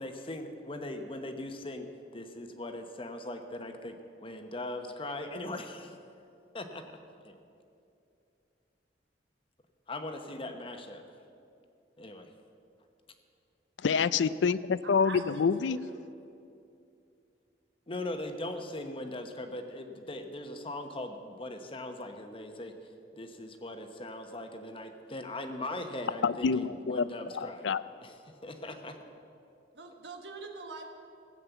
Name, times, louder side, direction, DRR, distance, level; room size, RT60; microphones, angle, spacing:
voice 1, 0.0-6.0 6.5-6.8 7.2-7.4 9.9-11.0 12.0-12.3 17.9-27.7 28.0-28.2 28.4-29.0, left 1 dB, 30° left, 1.0 m, -40 dB
voice 2, 13.8-15.8 26.2-27.1 27.3-27.8, left 5 dB, 85° left, 0.4 m, -27 dB
voice 3, 15.0-16.0 29.7-30.9, right 3 dB, 70° right, 1.4 m, -44 dB
16.0 x 7.6 x 8.0 m
head